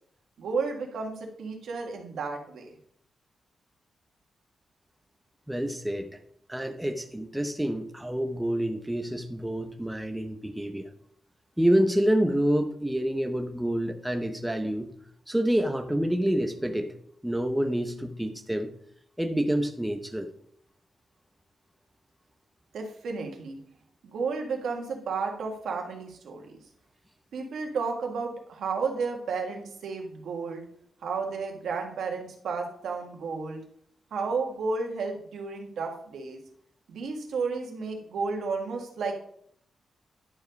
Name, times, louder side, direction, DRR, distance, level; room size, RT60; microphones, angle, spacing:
voice 1, 0.4-2.7 22.7-23.6 24.0-26.6 27.3-30.6 31.0-33.6 34.1-36.4 36.9-39.2, right 4 dB, 85° right, 2 dB, 1.8 m, -32 dB
voice 2, 5.5-6.1 6.5-10.9 11.6-14.9 15.3-16.9 17.2-18.7 19.2-20.3, right 1 dB, 5° right, 5 dB, 0.7 m, -27 dB
11.0 x 4.7 x 5.2 m, 0.66 s
wide cardioid pair, 135°, 0 cm